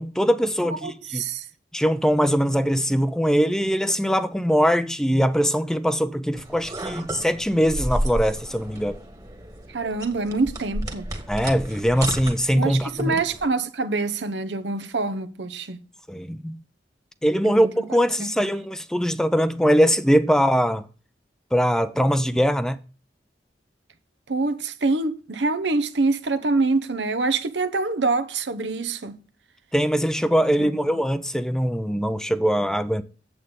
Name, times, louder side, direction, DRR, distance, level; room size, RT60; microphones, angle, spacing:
voice 1, 0.0-1.2 1.7-9.0 11.3-13.2 16.1-16.6 17.2-20.8 21.5-22.8 29.7-33.0, equal, 5° left, 0.4 m, -22 dB
voice 2, 0.6-1.5 9.7-11.1 12.5-15.8 17.4-17.7 18.2-18.3 24.3-29.2 30.6-31.0, right 3 dB, 85° right, 0.9 m, -25 dB
sound 1, 6.3-13.5, right 1 dB, 20° right, 1.6 m, -32 dB
8.6 x 7.9 x 3.7 m
head